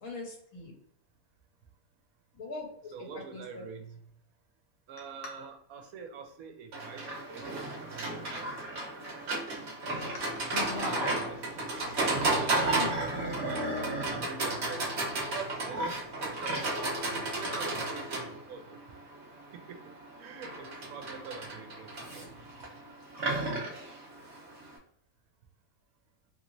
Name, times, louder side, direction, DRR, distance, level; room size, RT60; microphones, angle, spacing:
voice 1, 0.0-0.7 2.3-2.9 3.3-3.7 10.1-11.2 12.6-12.9, left 3 dB, 80° left, -1 dB, 1.5 m, -39 dB
voice 2, 2.9-4.0 4.9-8.6 9.4-9.7 10.7-11.4 12.1-13.8 14.1-14.9 15.3-18.8 19.5-22.3, right 6 dB, 85° right, 5 dB, 1.1 m, -45 dB
Livestock farm animals working animals, 6.7-24.8, right 2 dB, 55° right, 1.1 m, -33 dB
3.2 x 2.9 x 2.6 m, 0.68 s
omnidirectional pair, 1.5 m